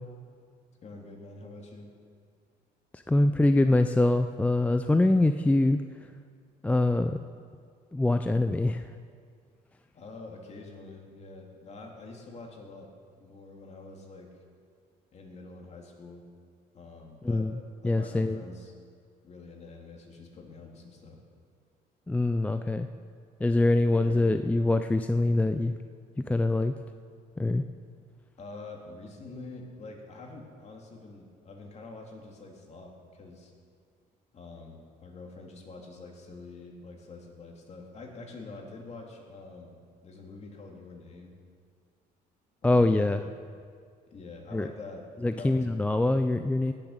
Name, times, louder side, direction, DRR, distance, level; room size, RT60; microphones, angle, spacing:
voice 1, 0.8-1.9 9.9-12.9 13.2-14.3 15.1-16.2 16.7-17.5 17.8-18.7 19.2-21.2 23.9-24.4 28.4-33.5 34.3-39.8 40.0-41.4 42.6-43.0 44.1-45.0 45.4-45.9, left 3 dB, 40° left, 0 dB, 2.6 m, -46 dB
voice 2, 2.9-6.1 6.6-7.2 7.9-8.9 17.2-17.6 17.8-18.4 22.1-22.9 23.4-25.8 26.3-26.7 27.4-27.7 42.6-43.2 44.5-44.7 45.2-46.7, left 2 dB, 10° left, 8 dB, 0.4 m, -24 dB
18.0 x 7.1 x 6.5 m, 2.1 s
cardioid pair, 110°, 17 cm